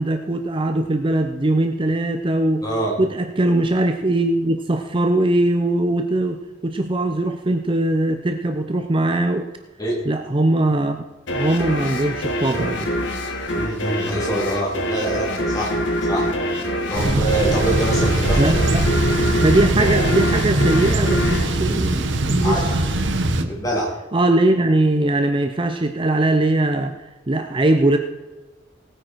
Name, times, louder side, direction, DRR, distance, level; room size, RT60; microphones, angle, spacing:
voice 1, 0.0-2.7 3.0-9.5 10.1-11.0 11.3-12.9 17.0-17.5 18.4-18.9 19.4-22.7 23.4-23.5 24.1-28.0, right 1 dB, 30° right, 6 dB, 0.6 m, -21 dB
voice 2, 2.6-3.0 9.8-10.1 13.5-15.8 16.1-16.3 16.9-18.7 22.4-22.9 23.5-23.9, right 1 dB, 20° left, -2 dB, 3.3 m, -25 dB
sound 1, 11.3-22.5, equal, 80° left, 1.7 m, -25 dB
Thunder / Bicycle, 16.9-23.4, right 2 dB, 80° right, 1.1 m, -21 dB
18.0 x 9.0 x 4.6 m, 1.1 s
head